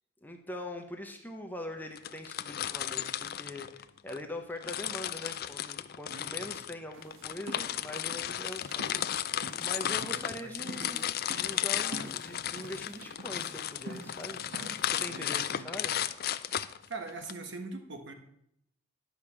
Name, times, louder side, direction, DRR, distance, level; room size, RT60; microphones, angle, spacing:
voice 1, 0.2-9.2 9.6-11.0 11.3-14.4 14.9-15.9, left 1 dB, 10° left, 4 dB, 0.7 m, -42 dB
sound 1, 2.0-4.2 4.6-17.3, left 11 dB, 45° left, 0.4 m, -34 dB
voice 2, 6.1-6.6 9.8-11.0 14.8-15.7 16.9-18.1, right 3 dB, 60° right, 6 dB, 1.3 m, -44 dB
sound 2, 6.9-15.4, right 1 dB, 80° right, 1.2 m, -47 dB
10.5 x 4.9 x 7.1 m, 0.73 s
head